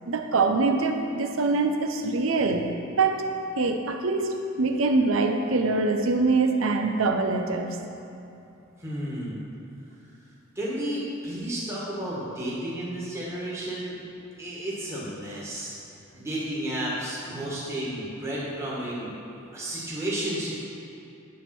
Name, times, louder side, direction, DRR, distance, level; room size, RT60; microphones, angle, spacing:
voice 1, 0.1-2.7 3.0-3.2 3.6-4.3 4.6-7.8 17.4-17.5, right 3 dB, 70° right, 4 dB, 0.6 m, -24 dB
voice 2, 8.8-9.4 10.5-14.0 14.4-15.7 16.1-19.1 19.5-20.5, right 1 dB, 15° right, -7 dB, 1.7 m, -32 dB
10.0 x 3.6 x 6.0 m, 2.8 s
head